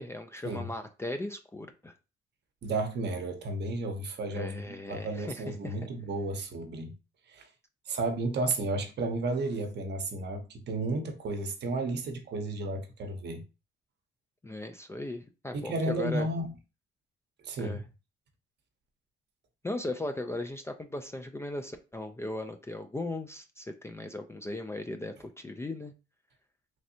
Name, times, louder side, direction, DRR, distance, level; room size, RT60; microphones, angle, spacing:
voice 1, 0.0-1.9 4.3-5.8 14.4-16.3 17.6-17.8 19.6-25.9, left 2 dB, 15° left, 0.3 m, -37 dB
voice 2, 2.6-6.9 7.3-7.5 7.9-13.4 15.5-16.5 17.4-17.8, right 2 dB, 60° right, 0.7 m, -33 dB
3.2 x 2.6 x 2.7 m
cardioid pair, 90°, 20 cm